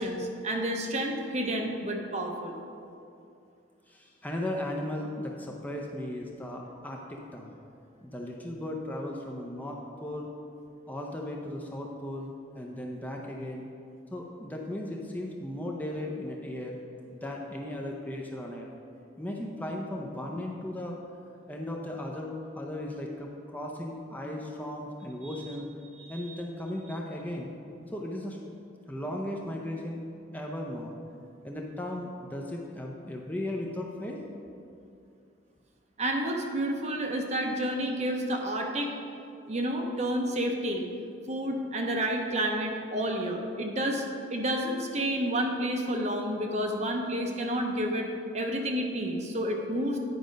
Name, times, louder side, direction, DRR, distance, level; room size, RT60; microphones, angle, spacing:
voice 1, 0.0-2.6 26.0-26.3 36.0-38.9 39.5-40.9 41.3-44.0 44.3-50.0, right 1 dB, 35° right, 2 dB, 0.7 m, -30 dB
voice 2, 3.9-7.5 8.0-10.3 10.9-13.6 14.1-16.8 17.1-18.7 19.2-21.0 21.5-25.6 26.1-27.5 27.9-28.4 28.9-30.0 30.3-30.9 31.4-34.2, left 1 dB, 10° left, -1 dB, 0.5 m, -36 dB
9.5 x 5.1 x 5.2 m, 2.5 s
head